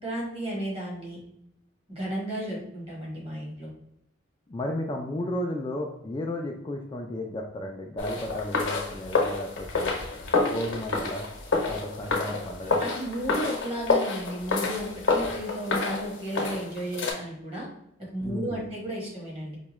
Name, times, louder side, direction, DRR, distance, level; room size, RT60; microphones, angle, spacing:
voice 1, 0.0-1.2 1.9-3.7 12.8-17.7 18.0-19.6, right 1 dB, 30° right, -3 dB, 1.2 m, -33 dB
voice 2, 4.5-10.0 10.4-11.3 11.7-12.8 15.2-15.3 18.2-18.7, left 1 dB, 25° left, 1 dB, 0.3 m, -33 dB
sound 1, 8.0-17.1, left 3 dB, 70° left, 0.8 m, -28 dB
4.6 x 2.2 x 3.0 m, 0.76 s
head